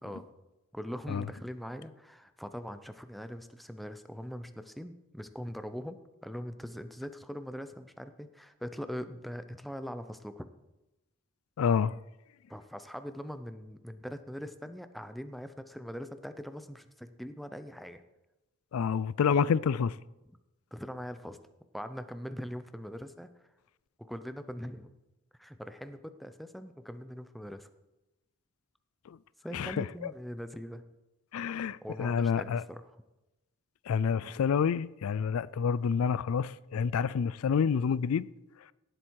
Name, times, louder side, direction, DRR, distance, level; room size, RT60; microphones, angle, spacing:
voice 1, 0.7-10.5 12.5-18.0 20.7-21.4 21.7-23.3 24.0-24.9 25.4-27.7 29.4-30.8 31.8-33.0, equal, ahead, 0.6 m, -42 dB
voice 2, 11.6-12.0 18.7-19.9 29.1-29.2 29.5-29.9 31.3-32.6 33.9-38.3, left 6 dB, 75° left, 0.4 m, -28 dB
17.5 x 7.9 x 4.7 m
head